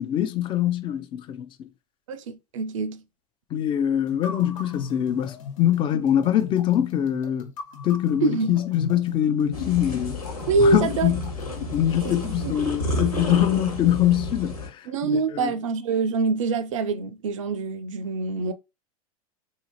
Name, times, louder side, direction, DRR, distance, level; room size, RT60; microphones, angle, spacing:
voice 1, 0.0-1.7 3.5-7.5 7.8-10.2 10.6-11.3 11.7-15.5, left 11 dB, 25° left, 0.6 m, -23 dB
voice 2, 2.1-3.0 8.2-8.6 10.5-11.1 12.0-12.6 14.9-18.5, right 4 dB, 60° right, 0.5 m, -25 dB
sound 1, 4.1-12.6, left 6 dB, 60° left, 1.1 m, -38 dB
sound 2, 9.5-14.7, left 1 dB, 85° left, 1.7 m, -31 dB
4.0 x 2.7 x 2.9 m
figure-of-eight pair, 90°, 19 cm